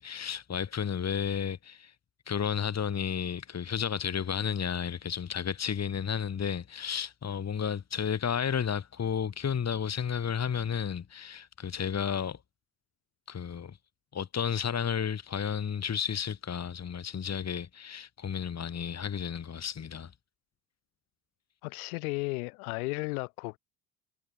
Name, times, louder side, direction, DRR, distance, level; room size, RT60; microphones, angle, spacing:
voice 1, 0.0-1.9 2.3-12.4 13.3-13.8 14.1-20.1, left 7 dB, 35° left, 4.4 m, -32 dB
voice 2, 21.6-23.6, left 26 dB, 75° left, 7.7 m, -34 dB
hypercardioid pair, 65°, 45 cm